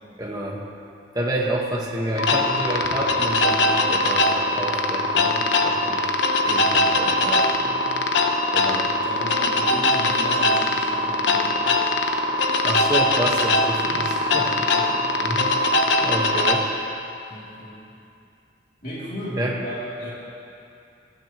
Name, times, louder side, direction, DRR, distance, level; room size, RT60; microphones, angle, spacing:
voice 1, 0.2-0.6 1.1-5.3 5.6-6.1 6.5-7.6 8.5-8.9 12.6-14.5 15.2-15.6 16.0-16.7 19.4-19.5, right 1 dB, 20° right, -2 dB, 1.5 m, -28 dB
sound 1, 2.2-16.6, left 2 dB, 70° left, 0.9 m, -21 dB
voice 2, 5.1-5.6 7.3-7.9 9.0-11.8 14.3-15.0 17.3-17.8 18.8-20.1, equal, 45° left, -8 dB, 3.0 m, -36 dB
20.0 x 13.5 x 3.1 m, 2.6 s
head